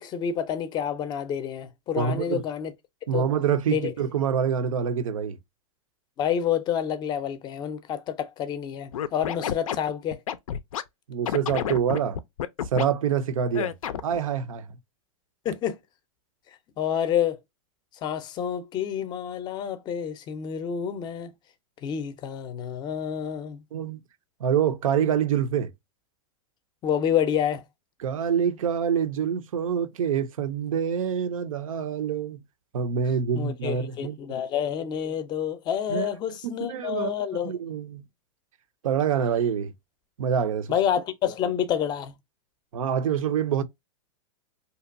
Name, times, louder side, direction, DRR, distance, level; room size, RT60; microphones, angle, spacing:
voice 1, 0.0-2.7 3.1-3.3 3.7-3.9 6.2-10.2 15.4-15.8 16.8-17.4 18.0-21.3 21.8-23.6 26.8-27.6 33.3-37.5 40.7-42.2, left 9 dB, 25° left, 0.5 m, -28 dB
voice 2, 1.9-2.4 3.1-5.4 11.1-12.2 12.7-13.7 14.0-14.7 23.7-24.0 24.4-25.7 28.0-32.4 32.7-34.4 35.9-36.1 36.4-37.1 37.4-38.0 38.8-39.7 40.2-40.7 42.7-43.6, right 8 dB, 85° right, 0.5 m, -26 dB
Scratching (performance technique), 8.9-10.8 11.3-12.9 13.5-14.2, left 9 dB, 85° left, 0.4 m, -29 dB
2.8 x 2.2 x 2.5 m
hypercardioid pair, 125°, 17 cm